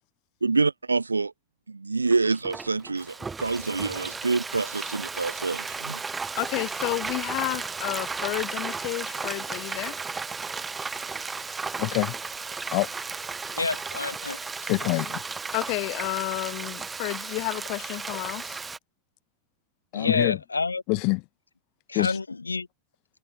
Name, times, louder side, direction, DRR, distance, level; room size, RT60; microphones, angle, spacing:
voice 1, 0.4-1.3 1.7-6.0, right 3 dB, 80° right, 0.6 m, -26 dB
Frying (food), 2.1-18.8, right 4 dB, 15° right, 1.3 m, -34 dB
voice 2, 6.4-10.0 11.8-12.1 12.7-12.9 14.6-15.2 15.5-18.6 19.9-20.4 20.9-21.2 21.9-22.2, left 33 dB, 45° left, 0.5 m, -29 dB
voice 3, 13.6-14.4 19.9-20.8 21.9-22.7, left 4 dB, 80° left, 0.7 m, -28 dB
figure-of-eight pair, 90°, 0 cm